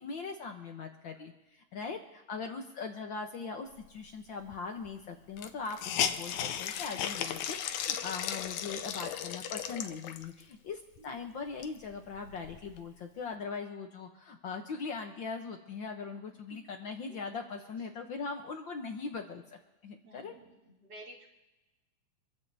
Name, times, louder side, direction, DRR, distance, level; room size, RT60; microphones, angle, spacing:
voice 1, 0.0-5.8 6.0-20.3, left 4 dB, 65° left, 4 dB, 1.1 m, -40 dB
Hiss, 4.5-4.6 4.8-4.9 5.4-10.4 11.0-11.1 11.4-12.8, left 9 dB, 85° left, 2.2 m, -36 dB
voice 2, 11.0-11.3 16.5-16.6 17.1-17.2 17.8-17.9 20.0-21.3, right 1 dB, 35° right, -3 dB, 3.3 m, -53 dB
26.0 x 14.5 x 2.7 m, 1.0 s
omnidirectional pair, 3.3 m